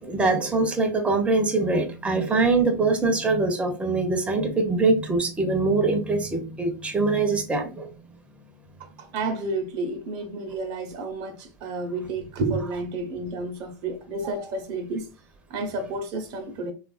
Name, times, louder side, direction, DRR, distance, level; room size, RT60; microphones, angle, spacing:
voice 1, 0.0-7.9, right 3 dB, 10° right, 0.7 m, -23 dB
voice 2, 9.0-15.1 15.5-16.7, right 2 dB, 55° right, 0.8 m, -30 dB
3.3 x 2.4 x 2.4 m
hypercardioid pair, 105°, 9 cm